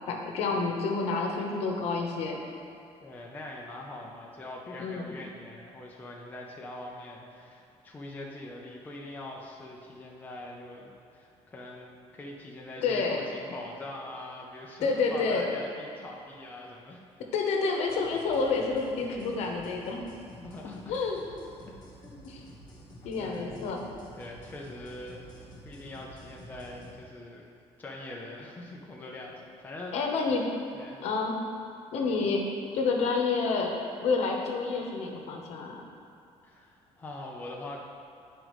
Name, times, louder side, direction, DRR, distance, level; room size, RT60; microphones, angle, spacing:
voice 1, 0.1-2.4 4.8-5.2 12.8-13.2 14.8-15.5 17.3-20.1 20.9-21.2 22.2-22.4 23.0-23.8 29.9-30.5 31.0-31.4 31.9-32.5 32.7-33.8 34.0-35.8, left 4 dB, 65° left, 1 dB, 1.0 m, -29 dB
voice 2, 3.0-17.0 20.4-20.9 22.0-22.2 23.2-23.7 24.2-25.3 25.6-27.4 27.8-30.2 30.7-31.1 36.4-37.8, left 2 dB, 15° left, -2 dB, 0.5 m, -43 dB
sound 1, 17.9-27.0, equal, 35° left, 1.1 m, -50 dB
9.6 x 5.0 x 3.1 m, 2.6 s
cardioid pair, 170°, 12 cm